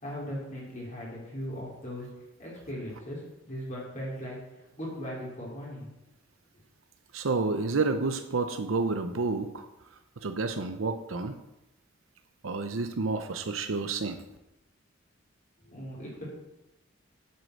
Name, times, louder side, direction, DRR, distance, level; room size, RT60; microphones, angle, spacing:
voice 1, 0.0-2.1 2.4-5.9 15.6-16.2, equal, 40° left, -6 dB, 3.6 m, -38 dB
voice 2, 7.1-9.7 10.2-11.4 12.4-14.2, right 3 dB, 90° right, 7 dB, 0.8 m, -29 dB
8.4 x 7.6 x 6.4 m, 0.94 s
head